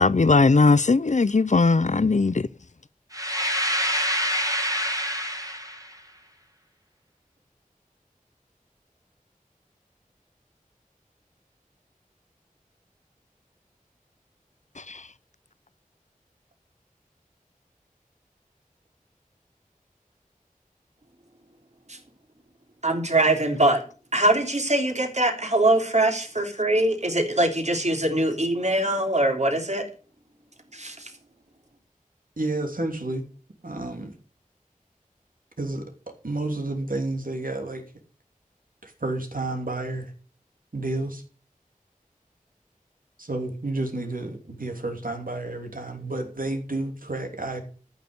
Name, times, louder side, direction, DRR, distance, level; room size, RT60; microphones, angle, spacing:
voice 1, 0.0-2.5 14.9-15.0, left 3 dB, 55° left, 0.6 m, -19 dB
sound 1, 3.1-5.9, equal, 25° right, 2.3 m, -26 dB
voice 2, 22.8-23.8 24.1-29.8 30.7-31.1, right 1 dB, 50° right, 3.3 m, -22 dB
voice 3, 32.4-33.2 33.6-34.1 35.6-35.9 36.2-37.8 38.8-40.1 40.7-41.2 43.2-47.6, right 2 dB, 75° right, 3.1 m, -30 dB
13.5 x 6.7 x 8.1 m
wide cardioid pair, 45°, 14 cm